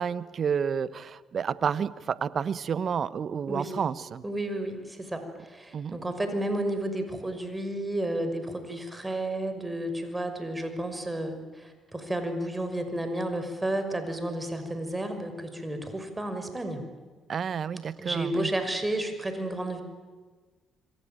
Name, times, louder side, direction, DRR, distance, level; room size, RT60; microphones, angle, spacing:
voice 1, 0.0-4.2 5.7-6.0 17.3-18.5, right 7 dB, 55° right, 16 dB, 1.1 m, -30 dB
voice 2, 4.2-16.9 18.0-19.8, right 1 dB, 15° right, 7 dB, 5.8 m, -32 dB
26.0 x 23.0 x 9.2 m, 1.4 s
hypercardioid pair, 55°, 0 cm